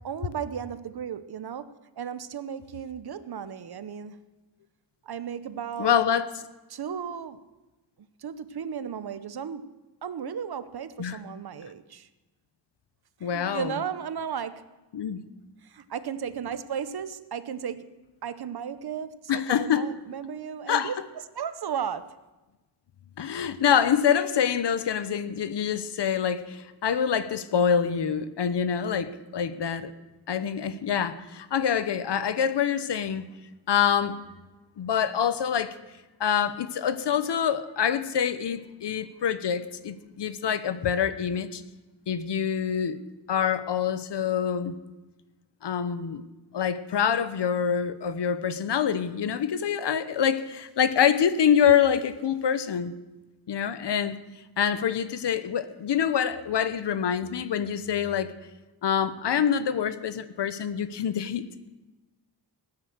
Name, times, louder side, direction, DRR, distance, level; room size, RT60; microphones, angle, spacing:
voice 1, 0.0-4.2 5.0-5.9 6.7-7.4 8.2-9.7 10.0-12.1 13.2-14.7 15.6-21.0 21.3-22.2, right 7 dB, 65° right, 13 dB, 0.9 m, -35 dB
voice 2, 5.8-6.3 11.0-11.2 13.2-13.7 14.9-15.3 19.3-19.8 20.7-20.9 23.2-29.9 30.3-33.3 33.7-34.2 34.8-35.7 36.2-41.6 42.1-43.0 43.3-44.8 45.6-46.2 46.5-52.9 53.5-54.2 54.6-58.3 58.8-61.5, left 8 dB, 75° left, 12 dB, 1.0 m, -26 dB
18.5 x 9.7 x 6.6 m, 1.1 s
wide cardioid pair, 130°, 41 cm